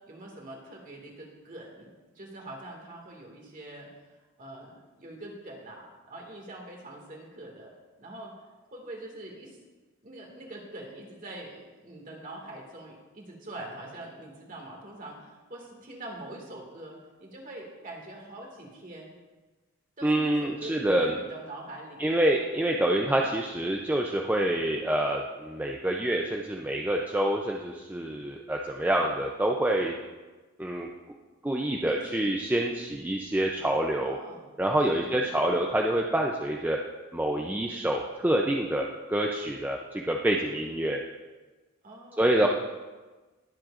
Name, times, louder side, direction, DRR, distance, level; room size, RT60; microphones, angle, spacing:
voice 1, 0.0-1.9 2.2-3.9 4.4-7.7 8.0-8.3 8.7-9.5 10.0-19.1 20.0-22.1 31.8-32.3 34.0-34.4 34.9-35.2 41.8-42.5, right 1 dB, 40° right, 0 dB, 2.0 m, -44 dB
voice 2, 20.0-21.2 22.0-30.0 30.6-30.9 31.4-34.2 34.6-36.8 37.1-41.0 42.2-42.5, right 1 dB, 10° right, 0 dB, 0.4 m, -27 dB
21.0 x 7.6 x 2.5 m, 1.3 s
head